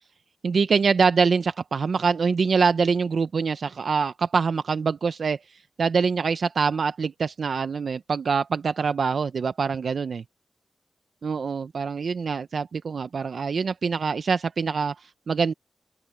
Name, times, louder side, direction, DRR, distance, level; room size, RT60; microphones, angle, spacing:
voice 1, 0.4-10.2 11.2-15.5, right 5 dB, 65° right, 0.5 m, -24 dB
open air
wide cardioid pair, 130°, 0 cm